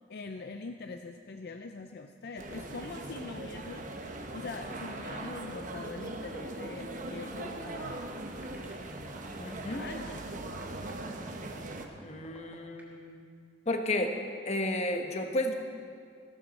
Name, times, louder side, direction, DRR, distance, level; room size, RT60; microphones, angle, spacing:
voice 1, 0.1-8.1 9.4-10.2, left 4 dB, 60° left, 6 dB, 0.5 m, -43 dB
sound 1, 2.4-11.9, right 2 dB, 45° right, 1.0 m, -40 dB
sound 2, 7.3-12.9, right 1 dB, 10° right, 3.1 m, -53 dB
voice 2, 9.4-9.8 12.0-13.2 13.7-14.1 14.5-15.5, left 1 dB, 40° left, 5 dB, 1.1 m, -32 dB
14.5 x 13.5 x 4.1 m, 2.2 s
head